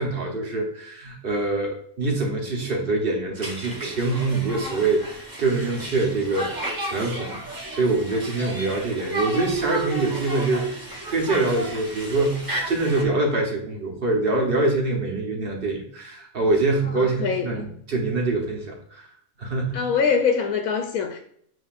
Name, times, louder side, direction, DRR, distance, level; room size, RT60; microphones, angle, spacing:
voice 1, 0.0-6.5 6.8-19.1 19.4-19.9, right 2 dB, 45° right, 1 dB, 1.0 m, -25 dB
Conversation, 3.4-13.0, equal, 20° right, 0.7 m, -33 dB
sound 1, 9.5-11.2, right 17 dB, 85° right, 1.1 m, -34 dB
voice 2, 16.9-17.6 19.7-21.2, left 6 dB, 70° left, 4 dB, 1.0 m, -24 dB
7.7 x 2.7 x 2.4 m, 0.65 s
omnidirectional pair, 1.6 m